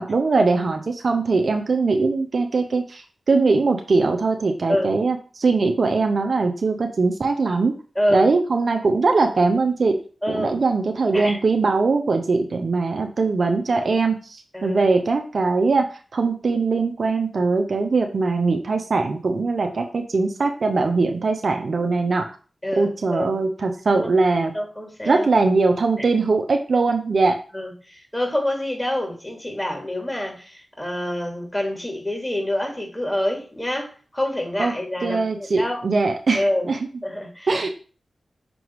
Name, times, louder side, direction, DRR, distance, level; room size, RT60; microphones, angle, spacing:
voice 1, 0.0-3.0 3.3-7.7 8.1-10.0 10.3-22.3 22.8-24.5 25.1-27.4 34.6-34.7 35.0-36.8 37.5-37.7, right 3 dB, 65° right, 5 dB, 0.9 m, -21 dB
voice 2, 7.9-8.3 10.2-10.6 11.1-11.4 14.5-14.8 22.6-23.3 24.5-25.3 27.5-35.8 36.3-36.7 37.0-37.5, left 1 dB, 20° left, 1 dB, 3.0 m, -26 dB
6.1 x 3.9 x 4.7 m, 0.37 s
cardioid pair, 40°, 0 cm